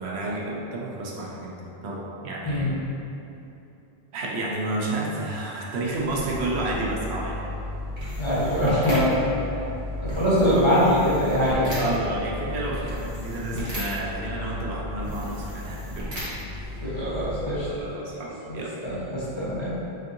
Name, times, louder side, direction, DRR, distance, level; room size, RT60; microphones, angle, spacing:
voice 1, 0.0-2.8 4.1-7.4 10.1-10.2 11.8-16.1 17.6-18.8, right 2 dB, 85° right, -3 dB, 0.9 m, -31 dB
sound 1, 5.9-17.9, left 1 dB, 40° right, 1.1 m, -34 dB
voice 2, 8.1-9.3 9.5-9.6 10.0-11.9 16.8-17.7 18.5-18.6 18.8-19.7, equal, 30° left, -11 dB, 0.9 m, -23 dB
4.5 x 2.7 x 2.5 m, 2.9 s
omnidirectional pair, 1.1 m